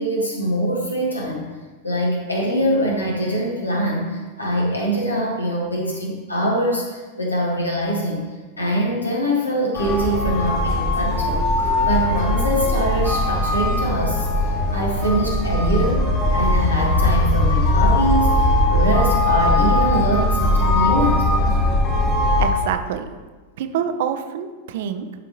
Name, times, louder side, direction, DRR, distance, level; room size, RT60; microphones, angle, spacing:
voice 1, 0.0-1.5 1.8-8.2 8.6-11.4 11.9-21.5, equal, 85° left, -2 dB, 1.8 m, -23 dB
sound 1, 9.7-22.5, left 1 dB, 45° left, 2.1 m, -19 dB
voice 2, 22.4-23.1 23.6-25.1, right 8 dB, 55° right, 8 dB, 0.7 m, -26 dB
11.0 x 5.6 x 3.1 m, 1.3 s
figure-of-eight pair, 90°, 0 cm